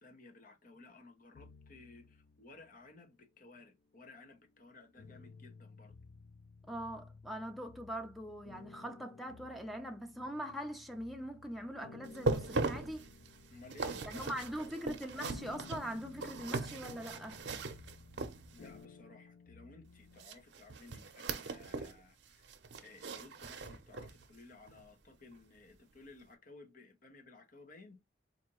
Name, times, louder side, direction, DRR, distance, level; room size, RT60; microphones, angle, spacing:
voice 1, 0.0-5.9 13.5-14.8 18.5-22.5 22.8-28.0, left 3 dB, 50° left, 0.9 m, -57 dB
sound 1, 1.3-3.1 3.7-20.2, left 5 dB, 70° left, 0.4 m, -56 dB
voice 2, 6.7-13.1 14.0-17.4, equal, ahead, 0.5 m, -42 dB
sound 2, 12.0-18.8 20.2-22.0 22.3-24.3 24.7-24.8 25.4-25.5, right 3 dB, 85° right, 0.6 m, -39 dB
4.1 x 2.7 x 3.0 m
head